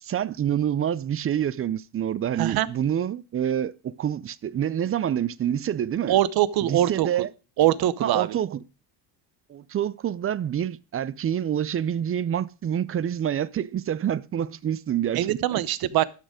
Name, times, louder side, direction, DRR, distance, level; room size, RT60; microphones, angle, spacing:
voice 1, 0.0-6.2 6.6-7.3 8.0-8.6 9.5-15.6, right 10 dB, 35° right, 0.5 m, -27 dB
voice 2, 6.1-7.1 7.6-8.4 15.1-16.0, right 13 dB, 60° right, 0.9 m, -22 dB
12.0 x 6.4 x 5.0 m
cardioid pair, 115°, 42 cm